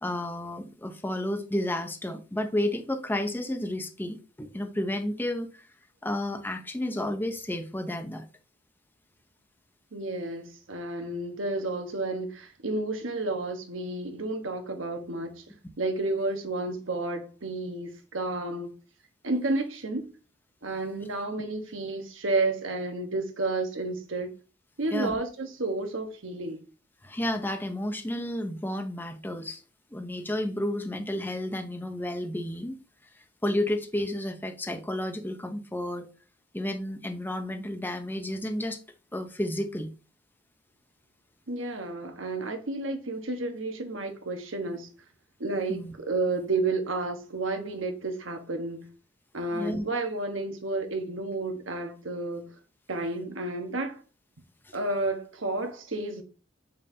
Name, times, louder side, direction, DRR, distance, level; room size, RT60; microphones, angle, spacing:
voice 1, 0.0-5.6 6.0-8.3 24.9-25.1 27.0-29.6 29.9-32.8 33.4-36.1 36.5-38.8 39.1-39.9 45.7-45.9 49.5-49.8, left 1 dB, 10° left, 0.7 m, -31 dB
voice 2, 9.9-15.4 15.8-18.7 19.2-20.1 20.6-24.3 24.8-26.6 41.5-44.9 45.4-48.9 49.3-52.5 52.9-54.0 54.7-56.2, right 2 dB, 85° right, 1.2 m, -31 dB
7.0 x 5.4 x 2.7 m
head